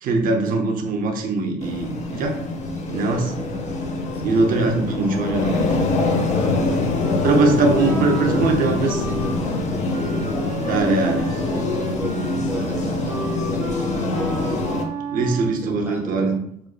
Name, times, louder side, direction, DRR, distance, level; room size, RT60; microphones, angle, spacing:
voice 1, 0.0-2.4 2.9-3.3 4.2-5.7 7.2-9.0 10.7-11.3 15.1-16.3, right 3 dB, 55° right, 4 dB, 0.6 m, -21 dB
hallway chatter, 1.6-14.8, left 2 dB, 45° left, 0.6 m, -24 dB
sound 1, 3.2-10.4, left 1 dB, 15° left, 0.9 m, -42 dB
voice 2, 4.1-4.4 6.8-10.6 11.3-14.9 15.2-16.4, right 2 dB, 10° right, 0 dB, 0.6 m, -36 dB
Wind instrument woodwind instrument, 7.2-15.7, right 3 dB, 80° right, 0.9 m, -33 dB
5.0 x 2.0 x 2.2 m, 0.67 s
cardioid pair, 110°, 17 cm